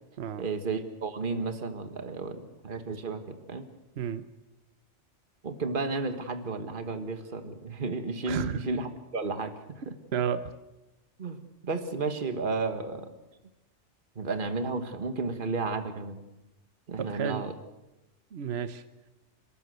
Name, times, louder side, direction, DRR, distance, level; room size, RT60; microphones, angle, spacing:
voice 1, 0.4-3.7 5.4-9.5 9.9-10.0 11.2-11.4 11.6-13.1 14.1-16.2 16.9-17.5, right 3 dB, 45° right, 8 dB, 1.7 m, -32 dB
voice 2, 4.0-4.3 8.3-8.6 10.1-10.5 17.0-17.4 18.3-18.8, right 8 dB, 60° right, 11 dB, 1.1 m, -31 dB
29.0 x 14.0 x 8.0 m, 1.0 s
omnidirectional pair, 1.2 m